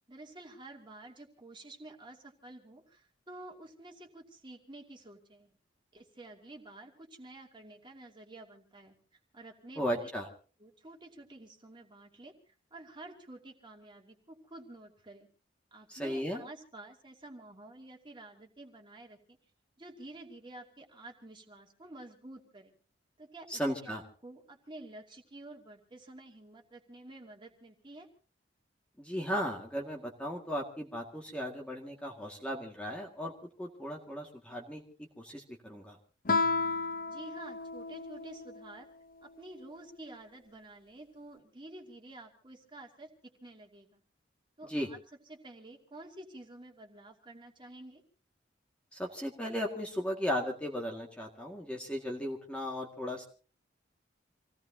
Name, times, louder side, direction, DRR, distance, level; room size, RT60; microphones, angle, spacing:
voice 1, 0.1-5.5 5.9-8.9 9.3-10.1 10.6-15.3 15.7-19.4 19.8-22.7 23.2-28.1 37.1-38.9 39.2-44.0 44.6-45.0 45.3-48.0, right 2 dB, 25° right, 2 dB, 2.6 m, -50 dB
voice 2, 9.8-10.3 15.9-16.4 23.5-24.0 29.0-33.3 33.6-34.8 35.2-36.0 44.7-44.9 48.9-53.3, equal, 5° left, 0 dB, 1.9 m, -36 dB
Guitar, 36.3-38.7, left 4 dB, 50° left, 0.9 m, -32 dB
27.5 x 17.0 x 2.8 m, 0.37 s
head